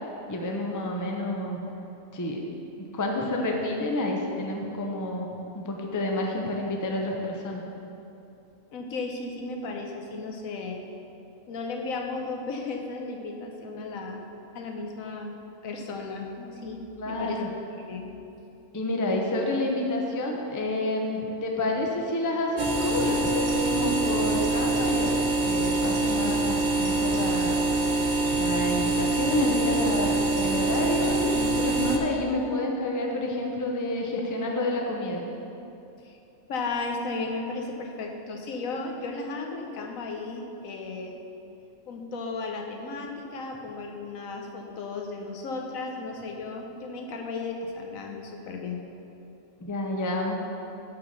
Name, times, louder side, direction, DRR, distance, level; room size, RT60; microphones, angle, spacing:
voice 1, 0.3-1.6 2.1-2.4 2.9-5.3 5.5-7.6 17.0-17.5 18.7-25.1 25.4-27.6 28.3-35.2 49.6-50.3, left 1 dB, 20° left, 0 dB, 0.6 m, -29 dB
voice 2, 8.7-10.8 11.5-14.2 14.5-15.3 15.6-17.4 17.9-18.1 36.0-36.2 36.5-41.2 41.9-48.8, left 3 dB, 85° left, 2 dB, 1.2 m, -35 dB
sound 1, 22.6-32.0, right 2 dB, 45° right, 0.7 m, -25 dB
5.9 x 5.6 x 6.6 m, 2.8 s
omnidirectional pair, 1.4 m